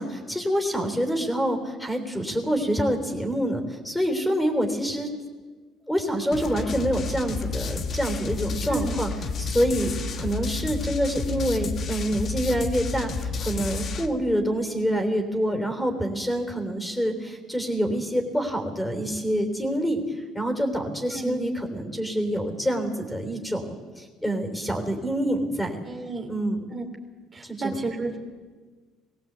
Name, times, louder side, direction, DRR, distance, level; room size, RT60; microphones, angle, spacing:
voice 1, 0.0-5.1 5.9-9.1 9.4-25.8 26.3-26.6 27.4-27.8, equal, 5° left, 5 dB, 3.5 m, -26 dB
sound 1, 6.3-14.1, left 4 dB, 50° left, 1.7 m, -31 dB
voice 2, 21.1-21.4 25.8-26.3 26.7-26.8 27.3-28.2, right 3 dB, 30° right, 2 dB, 2.8 m, -31 dB
20.0 x 16.5 x 8.1 m, 1.4 s
cardioid pair, 95°, 0 cm